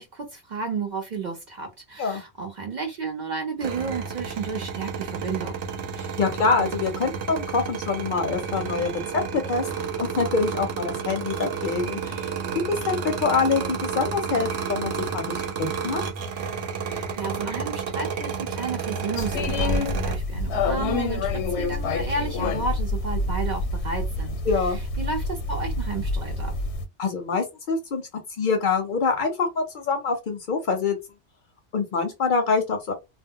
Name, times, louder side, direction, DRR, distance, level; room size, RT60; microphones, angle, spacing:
voice 1, 0.0-5.6 16.8-24.4 25.0-26.6, right 4 dB, 55° right, 0.5 m, -32 dB
sound 1, 3.6-20.1, right 6 dB, 80° right, 0.9 m, -31 dB
voice 2, 6.0-9.7 10.0-12.3 12.7-16.0 24.5-24.8 27.0-28.0 28.4-31.0 31.7-32.9, left 4 dB, 55° left, 0.6 m, -25 dB
sound 2, 19.2-26.8, left 3 dB, 85° left, 0.9 m, -27 dB
2.1 x 2.0 x 3.5 m
omnidirectional pair, 1.1 m